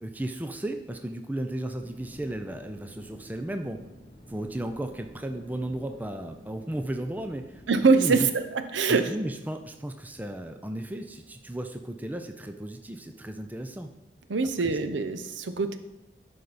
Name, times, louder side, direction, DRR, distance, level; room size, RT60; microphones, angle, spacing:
voice 1, 0.0-3.9 4.3-7.6 7.9-8.3 8.9-13.9 14.7-14.8, right 1 dB, 10° right, 6 dB, 0.4 m, -34 dB
sound 1, 1.8-8.1, equal, 30° left, 2.4 m, -50 dB
voice 2, 7.7-8.4 8.7-9.1 14.3-15.8, right 4 dB, 90° right, 10 dB, 0.7 m, -23 dB
11.0 x 5.1 x 4.1 m, 1.0 s
head